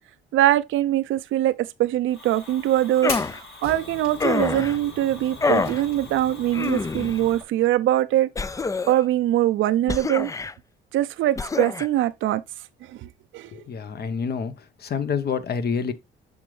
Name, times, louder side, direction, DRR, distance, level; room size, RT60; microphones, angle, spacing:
voice 1, 0.3-8.3 8.9-10.3 10.9-12.4 12.8-13.6, right 13 dB, 85° right, 0.6 m, -23 dB
Fire, 2.1-7.4, left 3 dB, 85° left, 5.0 m, -39 dB
sound 1, 3.0-3.4 4.2-4.8 5.4-5.8 6.5-7.2 8.4-9.1 9.9-10.5 11.4-11.9, left 4 dB, 15° left, 0.4 m, -26 dB
voice 2, 13.5-14.5 14.8-15.9, left 6 dB, 55° left, 1.0 m, -27 dB
7.2 x 5.2 x 3.2 m
cardioid pair, 90°, 20 cm